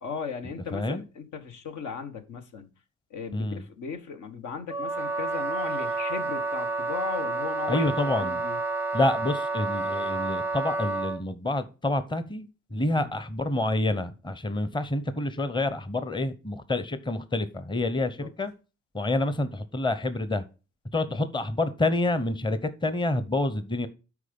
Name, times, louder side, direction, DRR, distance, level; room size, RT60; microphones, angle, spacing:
voice 1, 0.0-2.7 3.1-8.6 12.9-13.1 18.2-18.3 21.1-21.2, left 6 dB, 75° left, 1.4 m, -37 dB
voice 2, 0.7-1.0 3.3-3.6 7.7-8.4 8.9-18.5 18.9-20.4 20.9-23.9, left 2 dB, 15° left, 0.9 m, -28 dB
Wind instrument woodwind instrument, 4.7-11.2, right 3 dB, 10° right, 0.6 m, -30 dB
8.3 x 5.0 x 5.2 m
cardioid pair, 90°, 30 cm